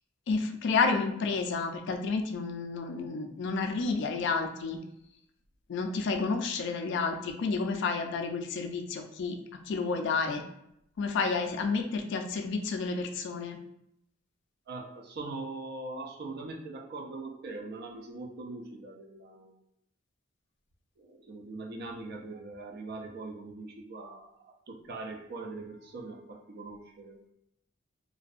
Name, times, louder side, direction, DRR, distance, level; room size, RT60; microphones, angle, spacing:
voice 1, 0.3-4.8 5.7-9.4 9.7-10.4 11.0-13.6, left 4 dB, 60° left, 5 dB, 0.3 m, -30 dB
voice 2, 14.7-19.6 21.0-24.4 24.7-27.2, right 3 dB, 55° right, 2 dB, 0.4 m, -41 dB
2.6 x 2.1 x 2.4 m, 0.76 s
head